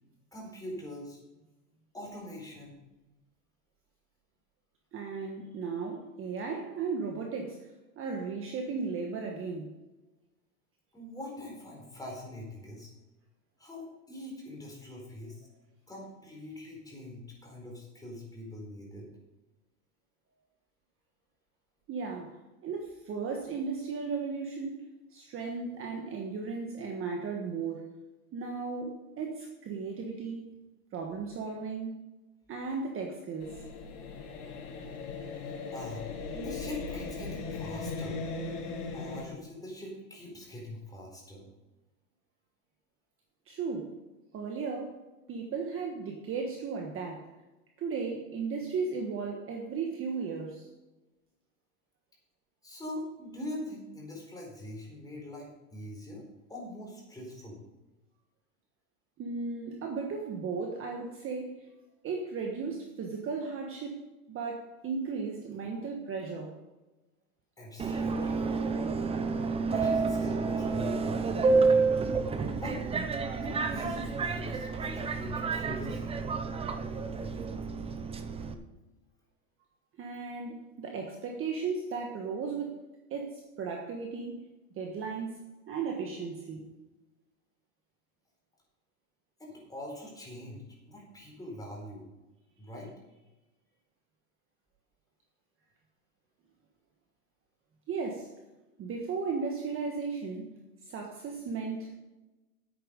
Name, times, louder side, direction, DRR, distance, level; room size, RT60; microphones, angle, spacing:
voice 1, 0.3-1.2 1.9-2.8 10.9-12.9 13.6-15.5 15.9-19.1 35.7-38.2 38.9-41.5 52.6-57.6 67.6-68.4 69.6-71.2 72.5-72.8 73.3-76.2 89.4-92.0 92.6-92.9, left 1 dB, 10° left, -2 dB, 4.3 m, -43 dB
voice 2, 4.9-7.7 8.0-9.7 21.9-22.3 22.6-24.8 25.1-27.8 28.3-30.5 30.9-32.0 32.5-33.6 43.5-43.9 44.3-45.0 45.3-47.3 47.8-50.7 59.2-61.7 62.0-64.0 64.3-66.5 80.0-82.8 83.1-84.4 84.7-86.6 97.9-98.3 98.8-100.5 100.9-101.9, right 5 dB, 30° right, 2 dB, 1.4 m, -35 dB
sound 1, 33.4-39.2, left 4 dB, 80° left, 4.2 m, -38 dB
Subway metro underground, 67.8-78.5, right 4 dB, 15° right, 0.7 m, -29 dB
10.0 x 8.8 x 5.3 m, 1.1 s
supercardioid pair, 135°, 44 cm